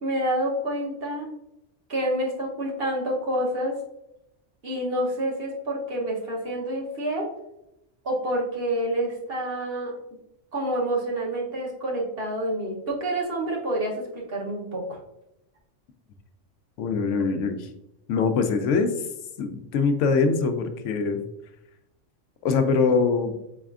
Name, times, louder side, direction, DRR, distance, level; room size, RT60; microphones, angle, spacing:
voice 1, 0.0-1.3 1.9-3.8 4.6-7.3 8.0-9.9 10.5-15.0, right 1 dB, 50° right, -2 dB, 1.1 m, -28 dB
voice 2, 16.8-17.7 18.1-19.0 19.4-21.2 22.4-23.3, left 4 dB, 80° left, 7 dB, 0.9 m, -23 dB
4.7 x 4.3 x 2.4 m, 0.86 s
omnidirectional pair, 1.3 m